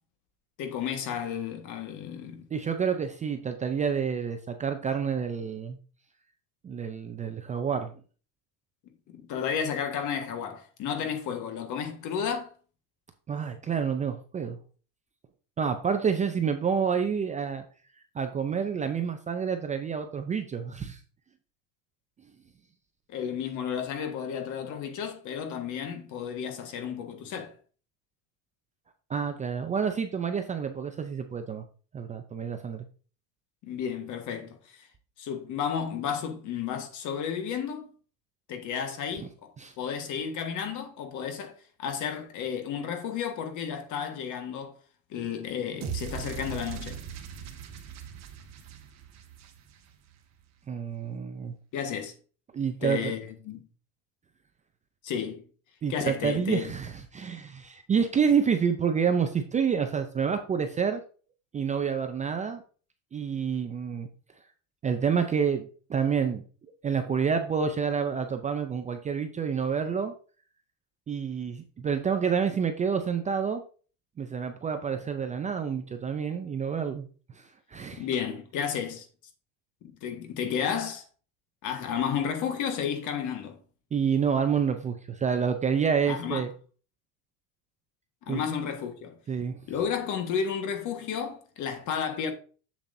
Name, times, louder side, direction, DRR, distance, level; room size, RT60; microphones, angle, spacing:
voice 1, 0.6-2.5 9.1-12.5 23.1-27.5 33.6-34.9 35.2-37.9 38.5-39.5 39.8-41.5 41.8-44.7 45.1-47.0 51.7-52.1 52.8-53.7 55.0-55.4 55.9-56.7 77.9-79.1 80.0-81.0 81.6-83.6 86.1-86.4 88.3-89.2 89.7-92.3, left 7 dB, 50° left, 1.5 m, -32 dB
voice 2, 2.5-5.8 6.6-7.9 13.3-14.6 15.6-17.6 18.1-21.0 29.1-31.6 31.9-32.8 39.6-39.7 50.7-51.5 52.5-53.1 55.8-61.0 61.5-62.6 63.1-64.1 64.8-66.4 66.8-70.1 71.1-73.6 74.2-77.1 77.3-78.1 83.9-86.5 88.3-88.4 89.3-89.6, right 6 dB, 20° right, 0.5 m, -28 dB
sound 1, 45.8-50.0, right 8 dB, 40° right, 1.6 m, -39 dB
7.5 x 7.1 x 2.6 m
cardioid pair, 145°, 40 cm